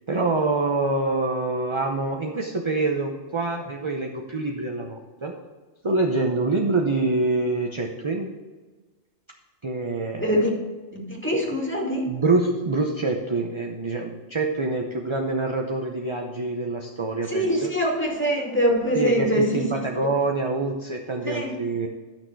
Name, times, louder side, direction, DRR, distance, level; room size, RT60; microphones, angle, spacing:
voice 1, 0.1-5.3 5.8-8.3 9.6-10.5 12.1-17.7 18.9-21.9, right 3 dB, 30° right, 1 dB, 0.7 m, -26 dB
voice 2, 10.2-10.5 10.9-12.0 17.3-19.6 21.3-21.5, equal, 10° left, -2 dB, 2.2 m, -23 dB
12.0 x 6.5 x 4.6 m, 1.3 s
omnidirectional pair, 1.3 m